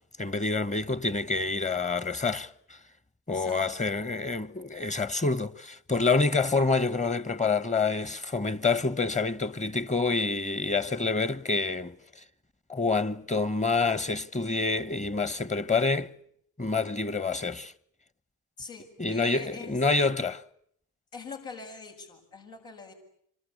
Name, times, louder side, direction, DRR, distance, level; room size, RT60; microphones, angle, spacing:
voice 1, 0.2-2.5 3.3-12.0 12.7-16.1 16.6-17.7 19.0-20.4, left 3 dB, 20° left, 1.2 m, -27 dB
voice 2, 3.3-3.8 18.6-19.8 21.1-22.9, left 4 dB, 80° left, 7.6 m, -43 dB
27.0 x 26.0 x 8.6 m
hypercardioid pair, 50°, 38 cm